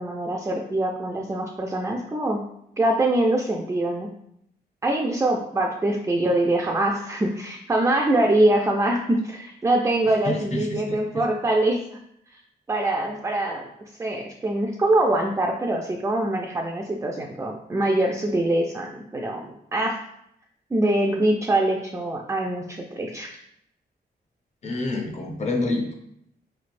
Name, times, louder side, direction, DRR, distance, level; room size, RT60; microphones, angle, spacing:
voice 1, 0.0-2.4 2.8-4.1 4.8-11.8 12.7-13.7 14.0-20.0 20.7-23.3, right 1 dB, 15° right, 1 dB, 0.3 m, -23 dB
voice 2, 10.2-11.3 24.6-25.9, left 2 dB, 40° left, 3 dB, 0.6 m, -28 dB
4.9 x 3.2 x 2.5 m, 0.74 s
wide cardioid pair, 145°, 18 cm